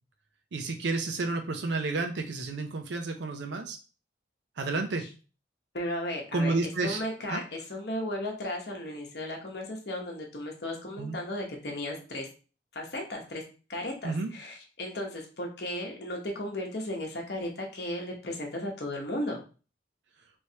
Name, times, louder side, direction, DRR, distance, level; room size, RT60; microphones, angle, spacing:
voice 1, 0.5-3.8 4.6-5.0 6.3-7.0 7.3-7.4 11.0-11.2 14.0-14.3, right 3 dB, 65° right, 5 dB, 0.5 m, -30 dB
voice 2, 5.7-12.3 12.7-13.4 13.7-19.4, left 1 dB, 55° left, 0 dB, 0.9 m, -35 dB
3.2 x 3.1 x 2.7 m, 0.35 s
head